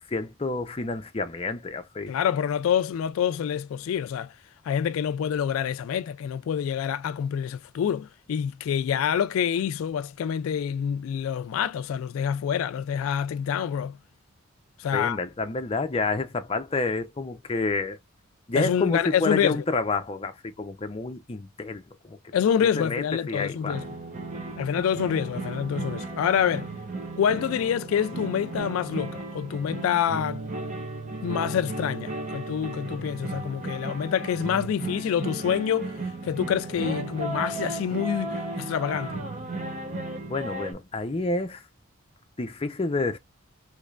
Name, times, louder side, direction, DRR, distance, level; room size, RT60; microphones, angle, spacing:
voice 1, 0.1-2.1 14.9-18.0 18.5-22.2 22.8-23.8 40.3-41.6 42.4-43.2, left 3 dB, 25° left, 0.5 m, -29 dB
voice 2, 2.1-4.3 4.7-14.0 14.8-15.2 18.5-19.6 22.3-23.8 24.6-26.7 27.2-30.4 31.2-35.9 36.2-39.2, left 8 dB, 80° left, 0.3 m, -27 dB
sound 1, 23.7-40.7, right 2 dB, 35° right, 0.9 m, -35 dB
3.2 x 3.2 x 2.4 m
head